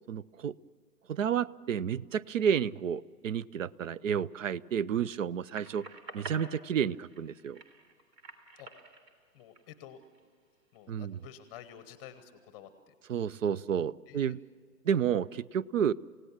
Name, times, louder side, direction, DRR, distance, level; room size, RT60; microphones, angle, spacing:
voice 1, 0.1-0.5 1.1-5.9 6.1-7.6 10.9-11.2 13.1-14.4 14.9-15.9, right 8 dB, 55° right, 22 dB, 0.5 m, -31 dB
sound 1, 5.5-10.3 10.8-11.6, right 3 dB, 75° right, 3.6 m, -49 dB
voice 2, 9.3-10.0 10.7-13.0 14.1-14.3, left 10 dB, 15° left, 12 dB, 0.8 m, -50 dB
28.5 x 17.0 x 7.2 m, 2.1 s
figure-of-eight pair, 135°, 49 cm